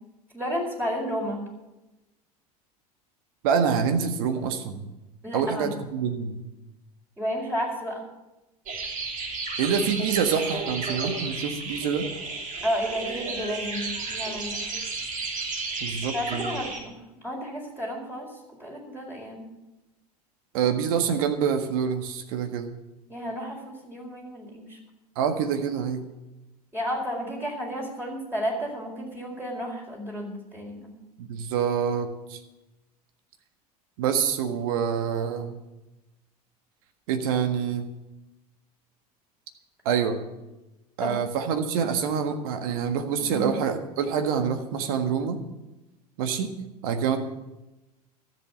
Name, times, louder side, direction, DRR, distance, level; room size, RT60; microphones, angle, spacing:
voice 1, 0.3-1.4 5.2-5.7 7.2-8.0 12.6-14.6 16.1-16.9 17.2-18.3 18.6-19.4 23.1-24.8 26.7-30.9 41.0-41.1 43.2-43.5, equal, 10° right, -2 dB, 4.6 m, -32 dB
voice 2, 3.4-4.9 5.3-6.4 9.6-12.1 15.8-16.5 20.5-22.7 25.1-26.0 31.2-32.4 34.0-35.6 37.1-37.9 39.8-40.2 41.0-45.4 46.2-46.5 46.8-47.2, right 7 dB, 65° right, 7 dB, 1.6 m, -26 dB
sound 1, 8.7-16.8, right 3 dB, 40° right, 3.1 m, -33 dB
13.5 x 7.8 x 8.9 m, 0.99 s
figure-of-eight pair, 75°, 20 cm